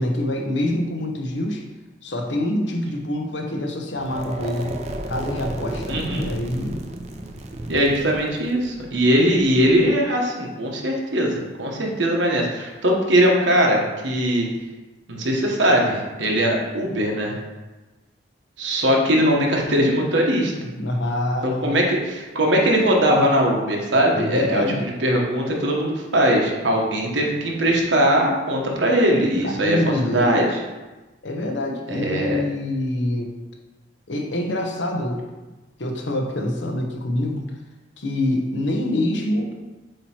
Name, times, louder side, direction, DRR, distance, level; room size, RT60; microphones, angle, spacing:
voice 1, 0.0-1.6 2.0-4.7 5.1-6.8 20.8-21.8 24.1-24.8 29.4-30.3 31.2-33.3 34.1-35.2 35.8-37.5 38.0-39.5, left 1 dB, 80° left, 2 dB, 0.9 m, -25 dB
sound 1, 3.9-9.9, right 1 dB, 35° right, 0.5 m, -33 dB
voice 2, 5.9-6.3 7.7-14.5 15.1-17.4 18.6-20.5 21.4-30.5 31.9-32.4, equal, 80° right, 0 dB, 1.2 m, -20 dB
7.8 x 3.0 x 4.4 m, 1.2 s
head